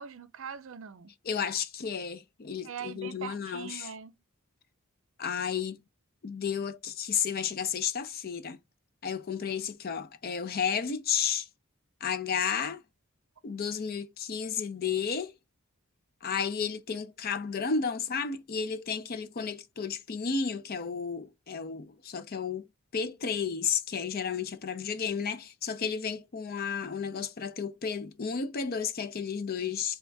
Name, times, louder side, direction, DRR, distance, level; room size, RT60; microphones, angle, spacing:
voice 1, 0.0-1.1 2.6-4.1, right 7 dB, 60° right, 0.5 m, -42 dB
voice 2, 1.2-3.9 5.2-5.8 6.2-8.6 9.0-11.5 12.0-12.8 13.4-15.3 16.2-22.7 22.9-30.0, left 6 dB, 45° left, 0.5 m, -32 dB
3.6 x 3.3 x 3.3 m
head